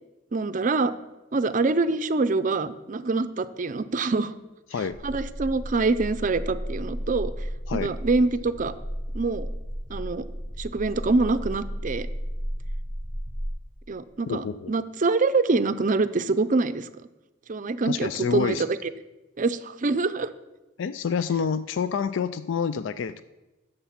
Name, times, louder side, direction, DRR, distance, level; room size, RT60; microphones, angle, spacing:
voice 1, 0.3-1.0 1.3-4.3 5.0-7.3 7.7-8.7 9.1-9.5 9.9-10.2 10.6-12.1 13.9-16.9 17.5-18.6 19.4-20.3, right 3 dB, 40° right, 13 dB, 0.5 m, -25 dB
sound 1, 4.9-13.5, equal, 10° left, 3.3 m, -34 dB
voice 2, 14.3-14.7 17.8-18.6 20.8-23.2, left 6 dB, 70° left, 14 dB, 0.4 m, -28 dB
10.0 x 6.7 x 7.2 m, 1.1 s
head